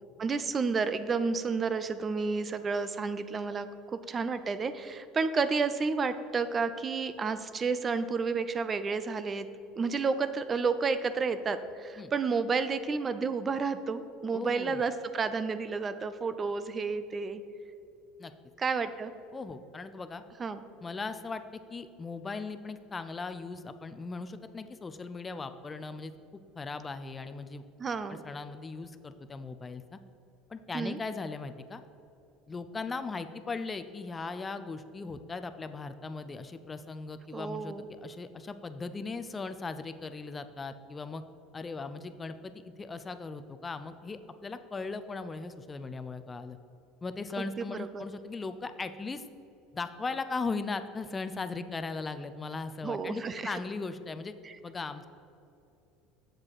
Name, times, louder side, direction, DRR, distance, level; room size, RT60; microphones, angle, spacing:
voice 1, 0.2-3.7 4.1-9.5 9.7-17.4 18.6-19.1 20.4-20.6 27.8-28.2 30.7-31.0 37.3-37.8 47.4-48.0 52.8-53.6, right 4 dB, 30° right, 12 dB, 0.5 m, -31 dB
voice 2, 14.3-14.8 18.2-18.3 19.3-20.2 20.8-27.6 28.1-30.0 30.5-31.8 32.5-41.2 41.5-46.6 47.0-49.2 49.7-54.3 54.6-55.1, left 4 dB, 20° left, 10 dB, 0.5 m, -38 dB
7.5 x 7.4 x 4.7 m, 2.7 s
supercardioid pair, 95°, 0 cm